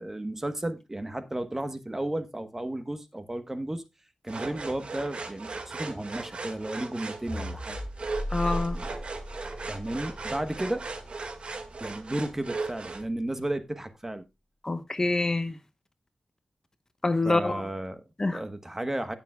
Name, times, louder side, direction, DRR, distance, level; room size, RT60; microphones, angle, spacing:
voice 1, 0.0-3.8 4.2-7.8 9.7-10.8 11.8-14.2 17.2-18.0 18.3-19.1, right 1 dB, 20° right, 1.2 m, -33 dB
sound 1, 4.3-13.0, right 3 dB, 60° right, 1.9 m, -38 dB
sound 2, 7.3-11.8, equal, 5° left, 4.1 m, -37 dB
voice 2, 8.3-8.8 14.6-15.6 17.0-17.6 18.2-18.4, left 2 dB, 30° left, 1.0 m, -26 dB
17.0 x 6.8 x 2.3 m
wide cardioid pair, 110°, 2 cm